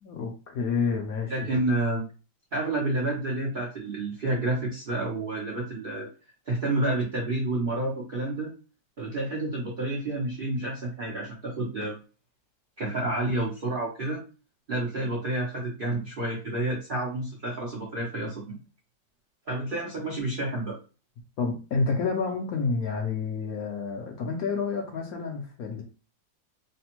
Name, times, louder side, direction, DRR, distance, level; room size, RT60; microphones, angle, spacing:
voice 1, 0.0-1.3 21.4-25.8, left 4 dB, 65° left, 1 dB, 1.0 m, -29 dB
voice 2, 1.3-2.0 2.5-6.1 6.5-8.5 9.0-12.0 12.8-14.2 14.7-18.6 19.5-20.8, right 2 dB, 65° right, -2 dB, 0.5 m, -29 dB
3.2 x 2.1 x 2.9 m, 0.33 s
omnidirectional pair, 2.0 m